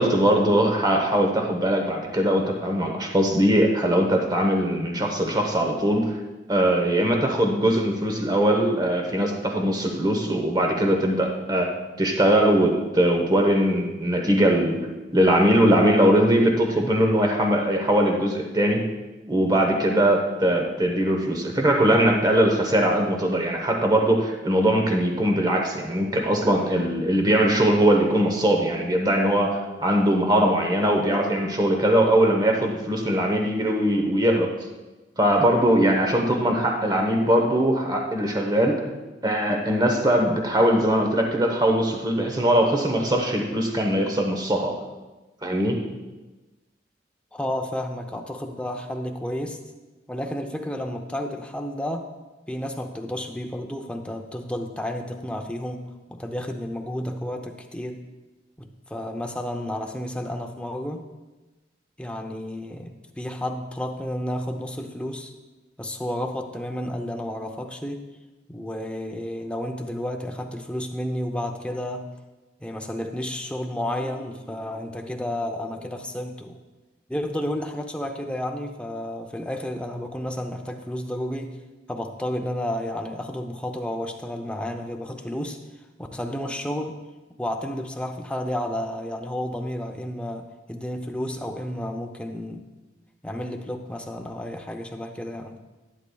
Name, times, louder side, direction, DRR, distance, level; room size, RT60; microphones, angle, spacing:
voice 1, 0.0-6.1 6.5-14.8 15.1-18.8 19.3-34.5 35.2-38.8 39.2-44.7 45.4-45.8, right 1 dB, 20° right, 2 dB, 1.0 m, -21 dB
voice 2, 47.3-49.6 50.1-52.1 52.5-58.1 58.6-61.1 62.0-65.3 65.8-68.1 68.5-72.1 72.6-76.6 77.1-81.6 81.9-85.6 86.0-87.0 87.4-92.7 93.2-95.6, left 1 dB, 5° left, 3 dB, 0.6 m, -31 dB
11.0 x 9.5 x 2.3 m, 1.2 s
head